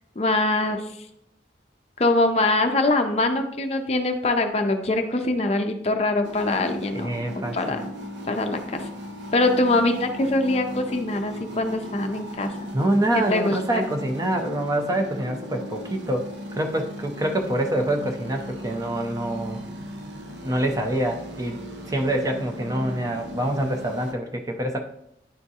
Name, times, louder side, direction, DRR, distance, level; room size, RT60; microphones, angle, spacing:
voice 1, 0.2-0.8 2.0-7.1 7.5-7.8 8.3-8.8 9.3-12.5 13.3-13.8, left 2 dB, 35° left, 5 dB, 0.5 m, -23 dB
sound 1, 6.2-24.1, equal, 80° right, 0.7 m, -37 dB
voice 2, 6.9-7.8 12.7-19.6 20.4-24.8, right 1 dB, 20° right, 4 dB, 0.5 m, -26 dB
10.0 x 3.5 x 2.8 m, 0.80 s
head